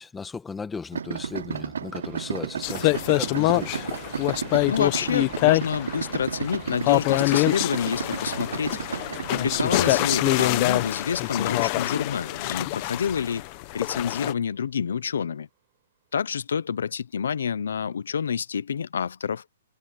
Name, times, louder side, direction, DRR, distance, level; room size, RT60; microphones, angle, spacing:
voice 1, 0.0-3.8, left 5 dB, 5° left, 1.5 m, -36 dB
Idling, 0.9-10.5, right 7 dB, 85° right, 0.7 m, -33 dB
sound 1, 1.9-15.2, right 20 dB, 30° right, 7.5 m, -49 dB
sound 2, 2.6-14.3, left 22 dB, 25° left, 0.8 m, -25 dB
voice 2, 4.7-9.0 9.3-13.4 13.7-15.5 16.1-19.4, left 7 dB, 80° left, 0.8 m, -28 dB
hypercardioid pair, 175°, 0 cm